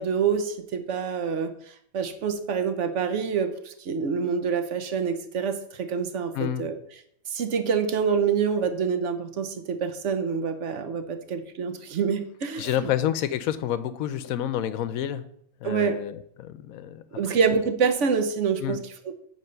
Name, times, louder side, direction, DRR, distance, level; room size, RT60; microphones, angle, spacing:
voice 1, 0.0-1.5 1.9-6.8 7.3-12.9 15.6-15.9 17.1-18.8, right 6 dB, 60° right, 8 dB, 1.1 m, -26 dB
voice 2, 12.6-15.2 15.6-17.4 18.6-18.8, left 11 dB, 90° left, 13 dB, 1.1 m, -29 dB
9.0 x 3.2 x 6.6 m, 0.68 s
omnidirectional pair, 1.4 m